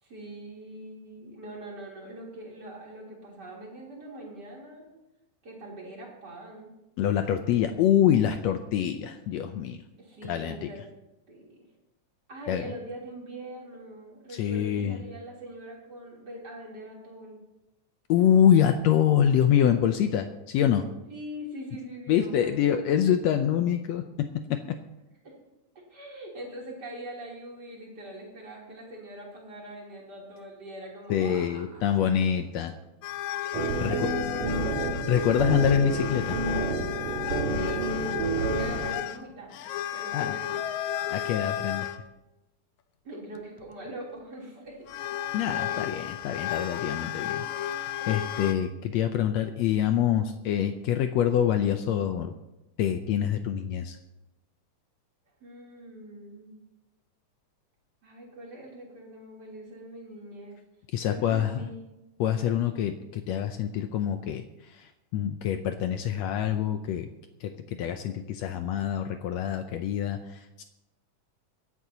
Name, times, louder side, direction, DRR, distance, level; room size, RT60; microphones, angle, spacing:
voice 1, 0.0-4.9 5.4-6.7 10.0-10.9 11.3-11.6 12.3-17.4 21.1-22.8 25.2-25.3 25.9-32.0 33.7-34.7 37.5-40.6 43.0-44.9 55.4-56.6 58.0-60.6 61.0-61.8, right 1 dB, 30° right, -4 dB, 3.7 m, -43 dB
voice 2, 7.0-9.8 10.2-10.7 12.5-12.7 14.3-15.0 18.1-20.8 22.1-24.8 31.1-32.7 33.8-34.1 35.1-36.4 40.1-40.4 41.1-41.9 45.3-47.4 47.8-52.3 52.8-54.0 60.9-61.6 62.2-67.1 67.4-70.6, left 9 dB, 90° left, 7 dB, 1.5 m, -26 dB
sound 1, 33.0-42.0 43.4-43.9 44.9-48.5, left 11 dB, 75° left, 2.0 m, -33 dB
sound 2, 33.5-38.9, right 3 dB, 75° right, 4.0 m, -29 dB
23.5 x 11.0 x 2.9 m, 0.95 s
omnidirectional pair, 3.9 m